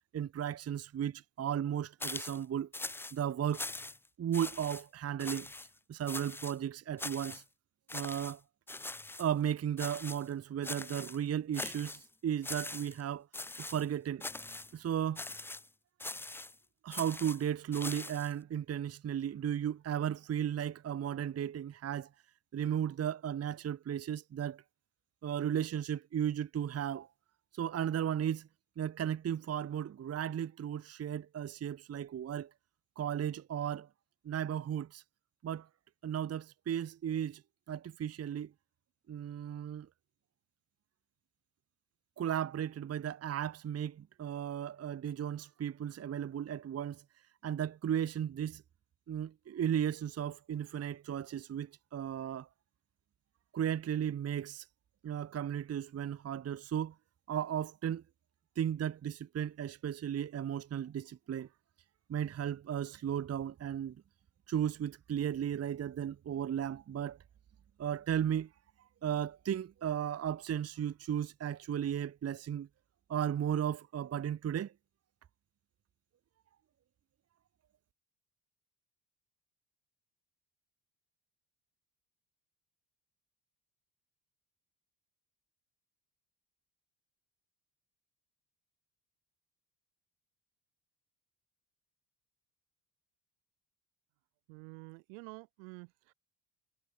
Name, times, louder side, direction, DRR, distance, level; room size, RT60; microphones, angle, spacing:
voice 1, 0.1-2.7 3.1-3.6 4.2-5.5 5.9-7.4 7.9-8.4 9.2-13.3 13.6-14.2 14.7-15.2 16.8-22.1 22.5-24.6 25.2-27.1 27.5-28.5 28.8-32.5 33.0-33.9 34.2-35.0 35.4-35.7 36.0-37.4 37.7-38.5 39.1-39.9 42.2-47.0 47.4-48.6 49.1-52.5 53.5-54.7 55.0-56.9 57.3-58.0 58.6-61.5 62.1-64.0 64.5-67.2 67.8-68.5 69.0-72.7 73.1-74.7, right 9 dB, 35° right, 0.8 m, -35 dB
sound 1, 2.0-2.4 2.7-3.2 3.5-4.1 4.3-4.8 5.2-5.7 6.1-6.6 7.0-7.4 7.9-8.4 8.7-9.3 9.8-10.3 10.6-11.2 11.5-12.1 12.4-13.0 13.3-13.9 14.2-14.7 15.2-15.7 16.0-16.6 16.9-18.3, left 2 dB, 5° left, 0.4 m, -42 dB
voice 2, 94.5-96.1, right 40 dB or more, 85° right, 4.6 m, -49 dB
supercardioid pair, 80°, 45 cm